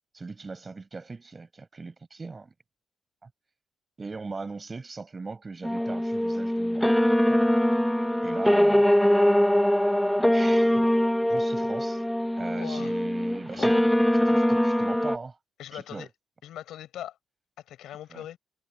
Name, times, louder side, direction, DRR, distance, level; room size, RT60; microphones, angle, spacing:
voice 1, 0.1-2.5 3.2-3.3 4.0-6.9 7.3-7.4 8.2-8.9 10.3-10.9 11.3-12.0 12.4-13.7 14.3-15.4 15.7-16.1 18.1-18.2, right 4 dB, 30° right, 6.4 m, -39 dB
sound 1, 5.6-15.2, equal, 5° left, 1.0 m, -22 dB
voice 2, 12.5-13.0 13.5-13.9 15.6-16.1 16.4-17.2 17.7-18.4, left 12 dB, 80° left, 5.5 m, -40 dB
cardioid pair, 90°, 0 cm